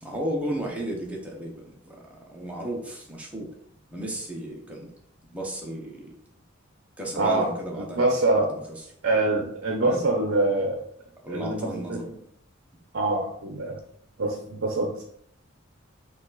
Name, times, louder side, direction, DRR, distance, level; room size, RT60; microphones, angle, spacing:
voice 1, 0.0-3.5 3.9-4.9 5.3-6.1 7.0-8.0 8.4-8.9 9.8-10.1 11.2-12.1, right 1 dB, 5° right, -2 dB, 0.8 m, -34 dB
voice 2, 7.2-7.5 7.8-8.5 9.0-10.8 11.3-12.0 12.9-13.8 14.2-15.0, right 2 dB, 55° right, 2 dB, 0.7 m, -24 dB
4.7 x 2.5 x 3.9 m, 0.68 s
head